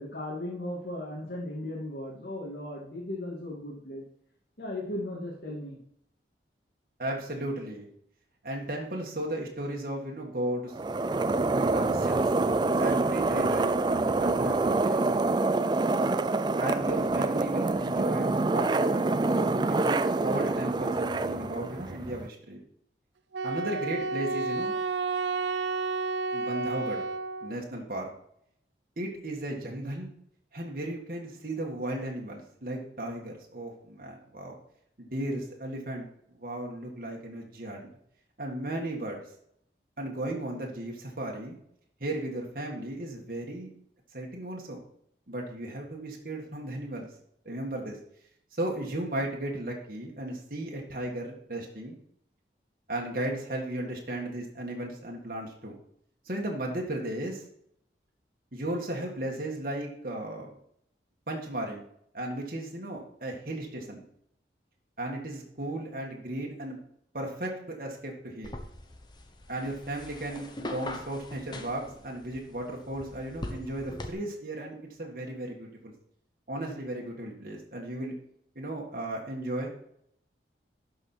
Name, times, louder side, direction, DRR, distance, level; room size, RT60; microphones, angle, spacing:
voice 1, 0.0-4.0 4.6-5.8, left 1 dB, 65° left, -5 dB, 2.4 m, -36 dB
voice 2, 7.0-7.9 8.4-10.7 11.5-15.4 16.6-22.6 23.4-24.7 26.3-27.0 27.4-28.1 29.0-30.1 30.5-34.6 35.0-36.1 36.4-37.9 38.4-39.3 40.0-41.6 42.0-43.7 44.1-44.8 45.3-47.1 47.5-48.0 48.5-52.0 52.9-55.8 56.3-57.4 58.5-60.5 61.3-61.9 62.1-64.0 65.0-66.8 67.1-68.5 69.5-75.9 76.5-78.1 78.6-79.7, right 1 dB, 50° right, -1 dB, 1.8 m, -35 dB
sound 1, 10.7-22.3, right 3 dB, 25° right, 0.3 m, -26 dB
Wind instrument woodwind instrument, 23.3-27.6, right 3 dB, 90° right, 0.5 m, -31 dB
sound 2, 68.4-74.1, left 1 dB, 25° left, 1.0 m, -42 dB
12.0 x 5.7 x 4.4 m, 0.70 s
head